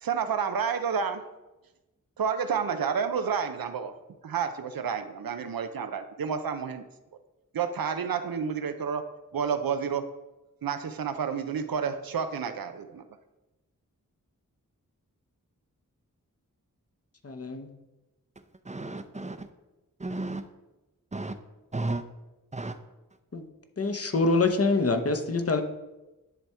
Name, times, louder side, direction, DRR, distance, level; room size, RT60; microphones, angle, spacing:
voice 1, 0.0-1.2 2.2-3.9 4.2-6.9 7.5-9.0 9.3-10.1 10.6-13.0, right 6 dB, 90° right, 9 dB, 0.6 m, -30 dB
voice 2, 17.2-17.7 23.3-23.4 23.8-25.6, left 3 dB, 45° left, 6 dB, 0.9 m, -25 dB
voice 3, 18.7-19.5 20.0-20.4 21.1-21.4 21.7-22.0 22.5-22.8, right 2 dB, 20° right, 10 dB, 0.6 m, -33 dB
10.5 x 3.5 x 4.4 m, 1.0 s
cardioid pair, 40°, 34 cm